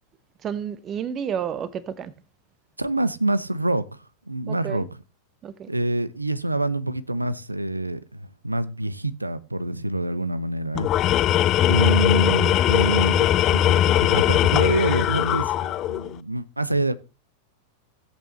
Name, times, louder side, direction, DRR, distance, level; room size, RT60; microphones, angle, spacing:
voice 1, 0.4-2.1 4.5-4.8 5.4-5.7, right 8 dB, 30° right, 1.0 m, -30 dB
voice 2, 2.8-3.8 4.3-5.0 5.7-10.9 11.7-16.9, right 1 dB, 85° right, 0.7 m, -26 dB
Tools, 10.7-16.1, left 12 dB, 35° left, 0.5 m, -20 dB
16.0 x 8.3 x 3.1 m
figure-of-eight pair, 90°, 0 cm